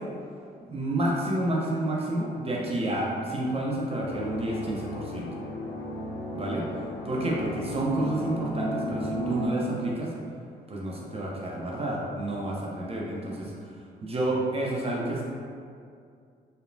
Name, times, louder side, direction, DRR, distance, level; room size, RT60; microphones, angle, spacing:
voice 1, 0.7-5.3 6.3-6.7 7.0-10.1 10.7-13.5 14.0-15.2, right 1 dB, 30° right, -3 dB, 0.6 m, -29 dB
sound 1, 4.0-9.5, left 1 dB, 55° left, 0.6 m, -35 dB
2.8 x 2.1 x 2.6 m, 2.3 s
supercardioid pair, 55°, 21 cm